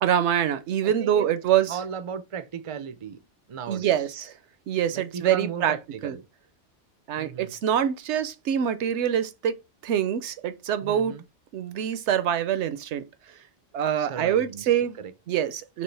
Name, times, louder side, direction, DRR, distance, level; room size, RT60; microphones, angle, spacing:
voice 1, 0.0-1.8 3.7-4.3 4.7-5.7 6.0-6.2 7.1-9.5 9.8-11.1 11.5-13.0 13.7-15.0 15.3-15.8, right 9 dB, 75° right, 0.9 m, -25 dB
voice 2, 0.8-1.3 1.7-3.2 3.5-4.0 4.9-6.2 7.1-7.5 10.8-11.2 14.0-14.7 15.0-15.1, right 7 dB, 50° right, 0.4 m, -36 dB
6.2 x 2.5 x 3.3 m
omnidirectional pair, 1.2 m